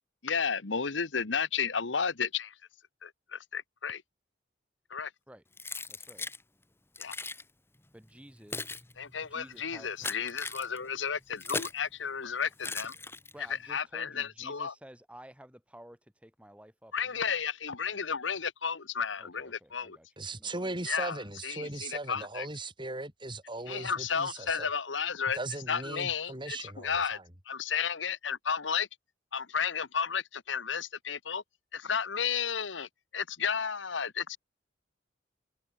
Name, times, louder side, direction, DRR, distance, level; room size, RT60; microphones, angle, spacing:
voice 1, 0.2-2.5 3.0-4.0 4.9-5.1 7.0-7.1 9.0-12.9 13.7-14.7 16.9-20.0 20.9-21.2 21.4-22.5 23.7-25.4 25.7-27.2 27.5-28.9 29.3-31.4 31.7-34.4, left 6 dB, 90° left, 1.3 m, -33 dB
Keys jangling, 5.6-6.4 7.0-7.4 8.2-11.9 12.6-13.5, left 3 dB, 15° left, 2.2 m, -38 dB
voice 2, 5.9-6.3 7.9-8.8 9.2-9.9 13.3-17.3 19.2-20.1 20.4-20.7, equal, 5° right, 6.0 m, -53 dB
voice 3, 20.2-24.7 25.3-27.2, right 2 dB, 25° right, 6.3 m, -38 dB
head